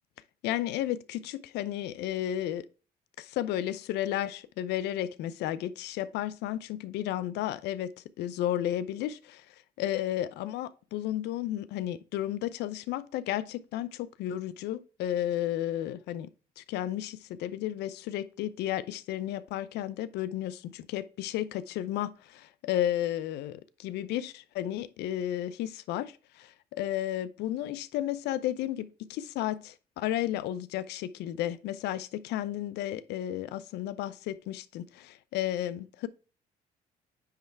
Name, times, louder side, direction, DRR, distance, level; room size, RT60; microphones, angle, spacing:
voice 1, 0.4-2.6 3.2-7.9 8.2-36.1, left 12 dB, 85° left, 0.6 m, -33 dB
9.5 x 3.2 x 4.5 m
cardioid pair, 110°, 17 cm